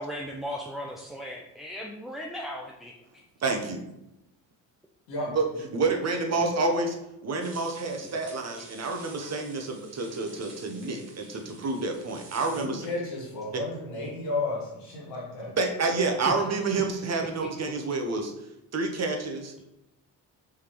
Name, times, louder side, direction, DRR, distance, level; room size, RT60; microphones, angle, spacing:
voice 1, 0.0-2.9 8.6-8.7 11.3-11.4 16.3-16.4 17.4-17.5, equal, ahead, -1 dB, 0.3 m, -37 dB
voice 2, 3.4-3.8 5.3-5.5 5.7-7.0 7.2-12.9 15.6-18.3 18.7-19.7, right 3 dB, 35° right, 4 dB, 0.9 m, -28 dB
sound 1, 7.4-12.7, right 3 dB, 80° right, 1.3 m, -49 dB
voice 3, 12.5-15.5, left 2 dB, 90° left, -5 dB, 1.5 m, -33 dB
4.8 x 3.4 x 3.0 m, 0.88 s
hypercardioid pair, 55°, 48 cm